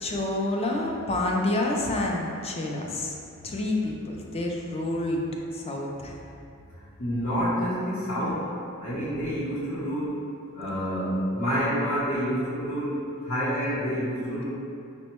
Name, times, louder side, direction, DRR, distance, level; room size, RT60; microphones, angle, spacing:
voice 1, 0.0-3.2 3.4-5.2 5.5-6.2, left 2 dB, 25° left, 0 dB, 0.4 m, -28 dB
voice 2, 7.0-8.5 8.8-10.2 10.5-14.4, equal, 60° left, -13 dB, 0.8 m, -28 dB
5.3 x 2.1 x 2.9 m, 2.5 s
head